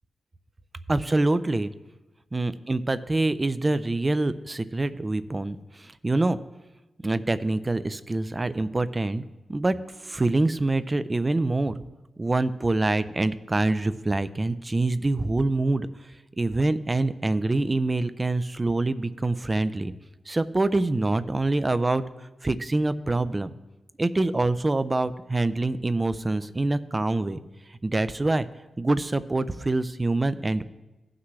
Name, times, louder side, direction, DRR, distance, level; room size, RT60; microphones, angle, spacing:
voice 1, 0.9-1.7 2.3-6.4 7.0-9.2 9.5-11.7 12.2-15.9 16.4-19.9 20.3-22.0 22.4-23.5 24.0-27.4 27.8-28.5 28.8-30.6, right 2 dB, 25° right, 13 dB, 0.4 m, -25 dB
16.5 x 5.9 x 3.2 m, 1.1 s
wide cardioid pair, 110°, 0 cm